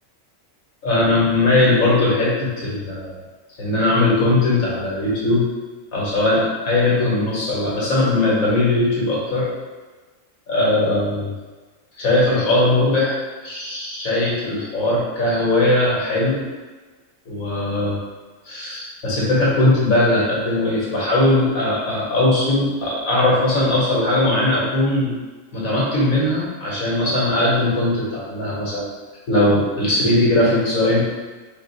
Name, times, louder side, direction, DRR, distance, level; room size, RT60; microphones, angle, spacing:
voice 1, 0.8-3.2 3.6-5.4 5.9-9.5 10.5-11.3 12.0-16.4 17.3-18.0 18.4-25.1 25.5-28.9 29.3-31.0, left 2 dB, 85° left, -6 dB, 1.7 m, -19 dB
3.9 x 2.4 x 4.0 m, 1.3 s
omnidirectional pair, 1.4 m